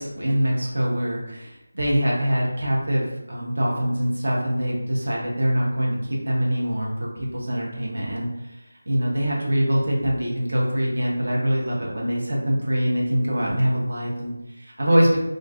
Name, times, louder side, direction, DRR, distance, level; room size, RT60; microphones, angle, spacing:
voice 1, 0.0-8.3 8.9-15.2, equal, 70° right, -3 dB, 0.7 m, -24 dB
2.4 x 2.3 x 2.4 m, 0.92 s
figure-of-eight pair, 165°, 0 cm